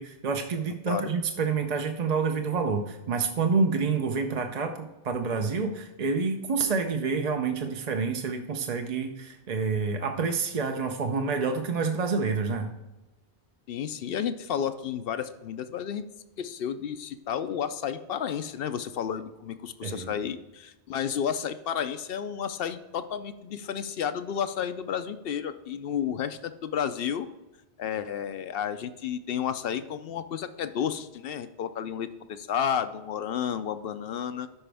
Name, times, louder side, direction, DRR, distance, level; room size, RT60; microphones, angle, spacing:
voice 1, 0.0-12.7 19.8-20.2, right 4 dB, 45° right, 4 dB, 0.6 m, -28 dB
voice 2, 13.7-16.1 16.4-27.3 27.8-34.5, left 8 dB, 65° left, 11 dB, 0.7 m, -31 dB
12.5 x 5.0 x 3.4 m, 1.0 s
omnidirectional pair, 1.1 m